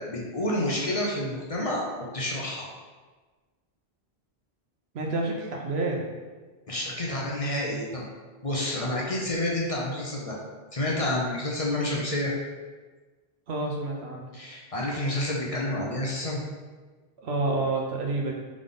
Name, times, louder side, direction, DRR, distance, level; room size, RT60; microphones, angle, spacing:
voice 1, 0.1-1.8 2.1-2.6 6.7-8.0 8.4-10.4 10.7-12.3 14.3-16.4, left 1 dB, 40° left, -3 dB, 0.7 m, -29 dB
voice 2, 4.9-6.1 13.5-14.3 17.2-18.3, right 2 dB, 80° right, 0 dB, 1.0 m, -28 dB
3.7 x 3.5 x 3.7 m, 1.4 s
omnidirectional pair, 1.1 m